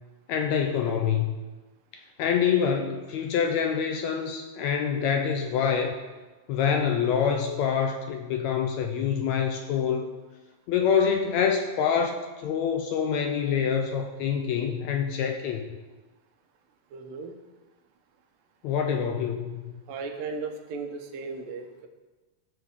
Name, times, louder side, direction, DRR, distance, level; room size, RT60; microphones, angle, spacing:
voice 1, 0.3-1.4 2.2-6.0 6.5-10.1 10.7-15.6 18.6-19.7, left 7 dB, 75° left, 4 dB, 1.7 m, -26 dB
voice 2, 16.9-17.4 19.9-21.9, right 4 dB, 90° right, 4 dB, 2.6 m, -36 dB
15.5 x 6.8 x 3.6 m, 1.2 s
omnidirectional pair, 3.7 m